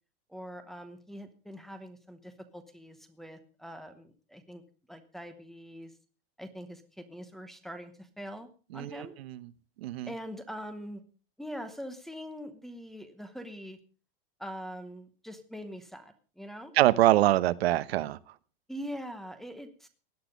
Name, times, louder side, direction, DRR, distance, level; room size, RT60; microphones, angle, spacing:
voice 1, 0.3-4.6 4.9-5.9 6.4-9.1 10.1-11.0 11.4-13.8 14.4-16.7 18.7-19.9, equal, ahead, 0.9 m, -43 dB
voice 2, 9.8-10.1 16.8-18.2, right 15 dB, 90° right, 1.1 m, -24 dB
17.0 x 10.5 x 5.2 m
supercardioid pair, 175°, 30 cm